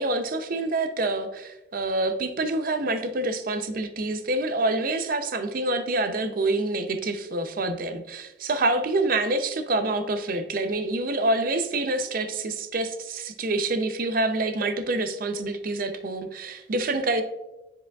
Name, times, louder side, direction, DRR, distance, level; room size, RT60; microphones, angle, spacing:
voice 1, 0.0-17.2, right 2 dB, 45° right, 9 dB, 0.5 m, -27 dB
9.9 x 4.8 x 2.3 m, 1.0 s
head